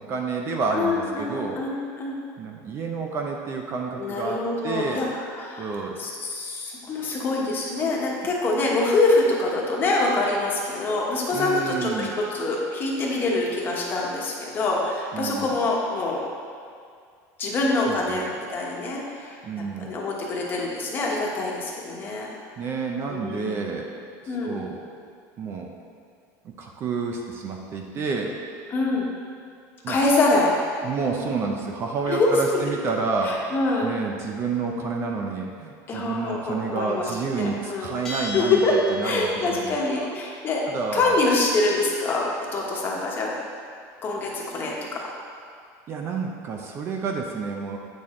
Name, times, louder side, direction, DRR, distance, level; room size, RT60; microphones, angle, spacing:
voice 1, 0.0-1.6 2.4-5.0 5.6-6.0 11.3-12.1 15.1-15.5 17.8-18.2 19.4-19.9 22.6-23.9 24.2-24.8 25.4-25.7 26.6-28.4 29.8-30.0 30.8-38.6 38.9-40.1 40.7-41.1 45.9-47.8, right 4 dB, 35° right, 2 dB, 0.6 m, -29 dB
voice 2, 0.7-2.1 4.0-16.2 17.4-18.2 18.5-19.4 19.8-22.3 23.1-23.6 24.3-24.6 28.7-29.1 29.9-30.5 32.1-32.6 33.2-33.9 35.9-37.1 37.3-37.9 38.3-38.8 39.0-40.6 40.9-43.3 44.0-45.0, left 2 dB, 25° left, -3 dB, 1.2 m, -25 dB
Bell, 38.0-39.6, left 1 dB, 5° left, 1.3 m, -35 dB
8.6 x 6.3 x 3.7 m, 2.2 s
cardioid pair, 160°, 8 cm